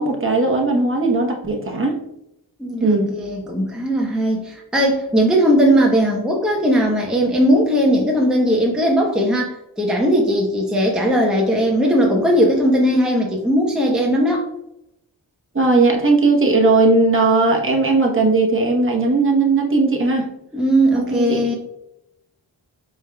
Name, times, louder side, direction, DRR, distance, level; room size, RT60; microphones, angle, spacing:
voice 1, 0.0-2.0 2.8-3.1 15.5-20.3 20.9-21.5, right 3 dB, 25° right, 1 dB, 1.0 m, -17 dB
voice 2, 2.6-14.5 20.5-21.6, equal, ahead, -1 dB, 0.9 m, -18 dB
4.9 x 3.6 x 2.2 m, 0.81 s
cardioid pair, 40°, 48 cm